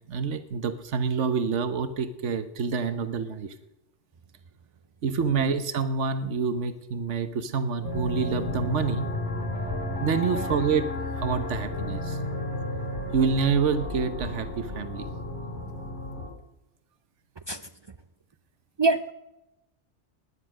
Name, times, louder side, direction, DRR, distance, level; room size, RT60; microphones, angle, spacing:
voice 1, 0.1-3.5 5.0-9.1 10.0-10.9 11.2-12.2 13.1-15.1, right 5 dB, 85° right, 10 dB, 1.3 m, -27 dB
sound 1, 7.8-16.3, left 1 dB, 85° left, 3.2 m, -33 dB
voice 2, 18.8-19.1, right 3 dB, 45° right, 10 dB, 0.3 m, -26 dB
19.0 x 10.0 x 6.4 m, 0.97 s
omnidirectional pair, 1.2 m